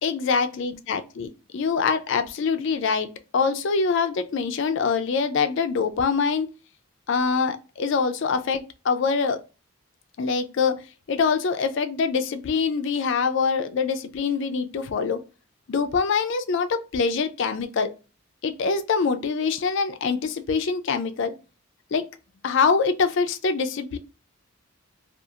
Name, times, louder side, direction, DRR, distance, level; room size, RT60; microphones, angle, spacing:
voice 1, 0.0-3.1 3.3-6.5 7.1-9.4 10.2-10.8 11.1-15.2 15.7-17.9 18.4-21.3 21.9-22.1 22.4-24.0, left 5 dB, 55° left, 0.4 m, -24 dB
2.4 x 2.4 x 2.7 m
head